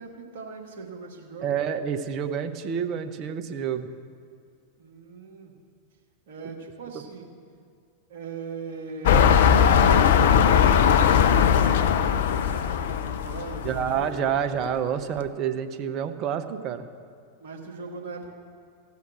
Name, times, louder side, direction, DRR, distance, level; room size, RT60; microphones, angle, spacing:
voice 1, 0.0-1.5 4.8-5.5 6.3-7.3 8.1-9.3 9.7-14.2 17.4-18.3, right 4 dB, 55° right, 0 dB, 1.9 m, -40 dB
voice 2, 1.4-3.9 13.6-16.9, right 8 dB, 35° right, 7 dB, 0.8 m, -28 dB
sound 1, 9.0-14.0 14.7-14.8, left 8 dB, 55° left, 0.5 m, -19 dB
15.0 x 5.7 x 7.4 m, 2.2 s
figure-of-eight pair, 90°, 0 cm